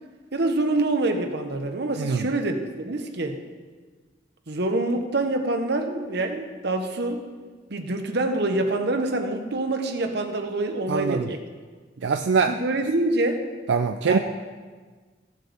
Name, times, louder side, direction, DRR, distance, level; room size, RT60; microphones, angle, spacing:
voice 1, 0.3-3.4 4.5-7.2 7.7-11.4 12.5-13.4 14.1-14.2, right 2 dB, 65° right, 6 dB, 1.0 m, -26 dB
voice 2, 2.0-2.3 10.9-11.3 12.0-12.6 13.7-14.2, right 5 dB, 85° right, 7 dB, 0.4 m, -23 dB
16.0 x 7.6 x 3.5 m, 1.4 s
head